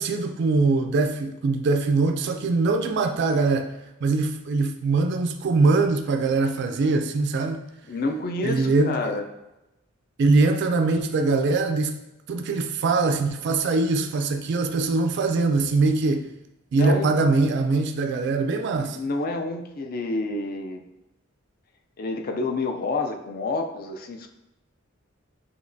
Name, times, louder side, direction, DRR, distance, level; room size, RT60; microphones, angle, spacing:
voice 1, 0.0-3.7 4.0-7.7 8.4-9.2 10.2-12.0 12.3-16.3 16.7-19.0, right 3 dB, 55° right, 6 dB, 0.3 m, -22 dB
voice 2, 7.9-9.2 16.7-17.1 18.9-20.8 22.0-24.3, left 3 dB, 45° left, 6 dB, 0.4 m, -28 dB
5.1 x 2.9 x 2.6 m, 0.93 s
head